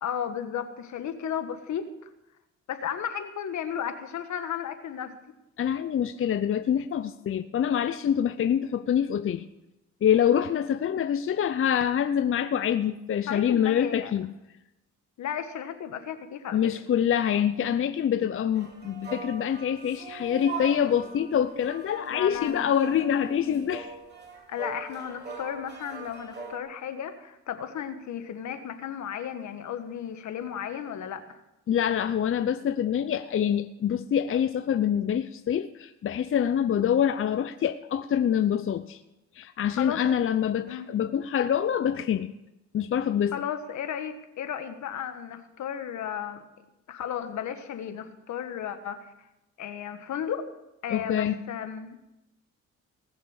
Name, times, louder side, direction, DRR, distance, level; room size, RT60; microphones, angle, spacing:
voice 1, 0.0-2.1 2.7-5.2 13.3-14.1 15.2-16.6 22.1-22.6 24.5-31.4 39.7-40.0 40.6-40.9 43.3-46.4 46.9-49.1 49.6-50.5 50.8-52.1, left 8 dB, 70° left, 9 dB, 1.5 m, -34 dB
voice 2, 5.6-9.4 10.0-14.3 16.5-24.0 31.7-39.0 39.3-42.3 42.7-43.4 50.9-51.4, left 9 dB, 45° left, 10 dB, 0.6 m, -25 dB
sound 1, 18.5-26.6, right 4 dB, 35° right, 3.1 m, -41 dB
19.5 x 6.7 x 7.2 m, 0.92 s
cardioid pair, 90°, 30 cm